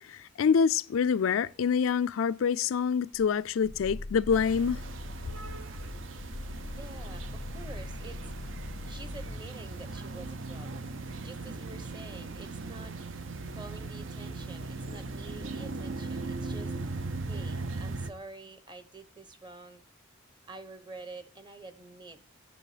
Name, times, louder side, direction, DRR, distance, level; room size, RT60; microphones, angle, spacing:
voice 1, 0.0-4.8, left 6 dB, 85° left, 0.4 m, -26 dB
Growling, 3.1-9.5, left 2 dB, 20° left, 0.4 m, -41 dB
sound 1, 4.3-18.1, right 3 dB, 70° right, 0.7 m, -39 dB
voice 2, 6.7-8.3 8.9-10.9 11.2-13.0 13.5-16.7 17.3-19.8 20.5-22.2, right 3 dB, 25° right, 0.9 m, -48 dB
9.9 x 6.7 x 4.9 m
head